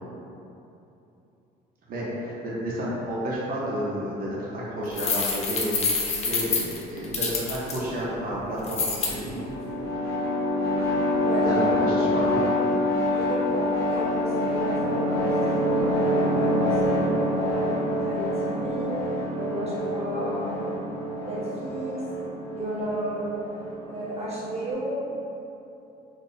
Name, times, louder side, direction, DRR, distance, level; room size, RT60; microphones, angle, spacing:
voice 1, 1.9-9.5 11.4-12.4, equal, 60° right, -6 dB, 1.0 m, -31 dB
sound 1, 4.9-7.8 8.6-9.1, left 4 dB, 40° left, 0.6 m, -26 dB
sound 2, 9.3-24.7, left 1 dB, 70° left, 1.0 m, -26 dB
voice 2, 13.1-19.0 19.3-20.8 21.2-22.0 22.5-23.3 23.8-25.0, right 1 dB, 40° right, -7 dB, 1.1 m, -33 dB
3.9 x 3.0 x 2.7 m, 2.9 s
cardioid pair, 110°, 17 cm